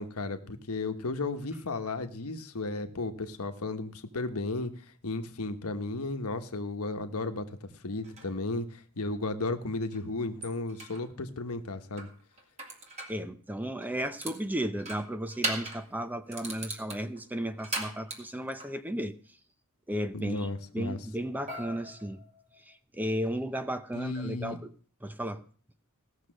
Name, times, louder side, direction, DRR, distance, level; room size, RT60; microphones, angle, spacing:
voice 1, 0.0-4.7 5.0-12.1 20.1-21.0 23.9-24.6, left 2 dB, 75° left, 1.2 m, -34 dB
sound 1, 8.0-8.3 9.9-10.0 10.4-11.0 12.0-13.2 13.8-14.4 14.8-15.9 16.3-18.7 21.5-22.7, right 2 dB, 30° right, 2.4 m, -38 dB
voice 2, 13.1-19.1 19.9-22.2 22.7-24.7 25.0-25.4, equal, 10° right, 0.6 m, -34 dB
16.5 x 6.6 x 6.4 m
head